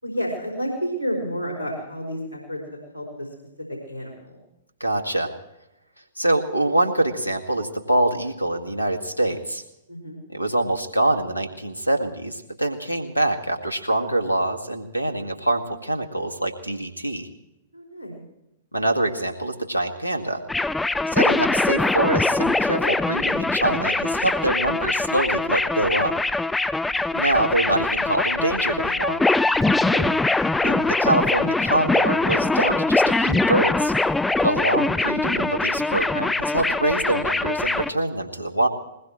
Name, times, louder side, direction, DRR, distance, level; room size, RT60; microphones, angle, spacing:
voice 1, 0.0-3.3 3.7-4.4 9.9-10.2 17.7-18.2 20.9-21.2 27.1-27.2 29.9-30.1 34.5-34.8, equal, 85° right, -1 dB, 4.8 m, -31 dB
voice 2, 4.8-5.3 6.2-9.6 10.3-17.3 18.7-20.4 21.1-26.1 27.1-29.2 30.6-33.9 34.4-38.7, right 1 dB, 90° left, 8 dB, 1.9 m, -24 dB
sound 1, 20.5-37.9, left 2 dB, 5° left, 0.5 m, -22 dB
21.0 x 20.5 x 3.1 m, 0.89 s
figure-of-eight pair, 110°, 0 cm